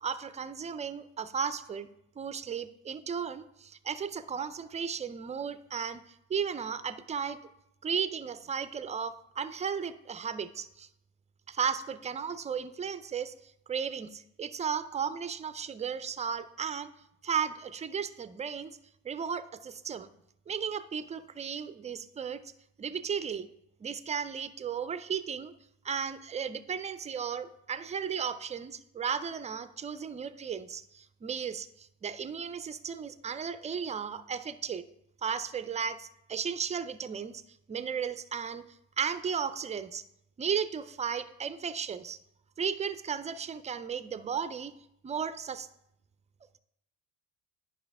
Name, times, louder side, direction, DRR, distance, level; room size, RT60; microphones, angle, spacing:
voice 1, 0.0-1.9 2.2-7.4 7.8-10.9 11.5-16.9 17.2-18.7 19.0-20.1 20.5-22.4 22.8-23.5 23.8-25.5 25.8-34.8 35.2-37.4 37.7-38.6 39.0-40.0 40.4-42.2 42.6-44.7 45.0-45.7, right 7 dB, 20° right, 13 dB, 0.4 m, -35 dB
9.7 x 5.6 x 3.5 m, 0.80 s
hypercardioid pair, 80°, 37 cm